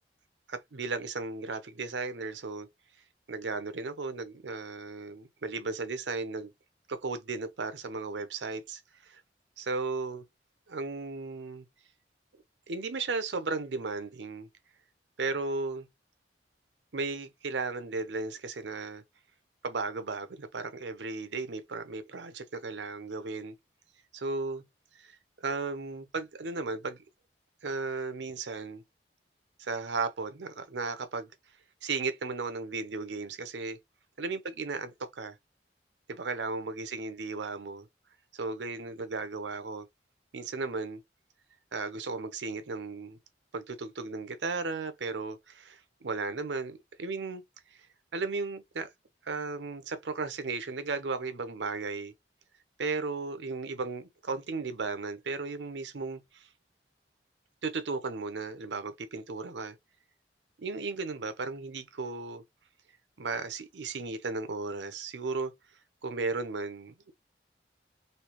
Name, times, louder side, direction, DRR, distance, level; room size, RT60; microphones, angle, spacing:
voice 1, 0.5-2.7 3.3-6.5 6.9-9.2 9.6-10.2 10.7-11.7 12.7-14.5 15.2-15.9 16.9-19.0 19.6-23.5 24.1-24.6 25.0-27.0 27.6-28.8 29.6-31.3 31.8-33.8 34.2-35.4 36.1-37.9 38.3-39.9 40.3-41.0 41.7-43.2 43.5-47.4 48.1-48.9 49.2-52.1 52.8-56.5 57.6-59.8 60.6-62.4 63.2-65.5 66.0-67.1, right 3 dB, 85° right, 0.7 m, -35 dB
3.2 x 2.8 x 3.0 m
head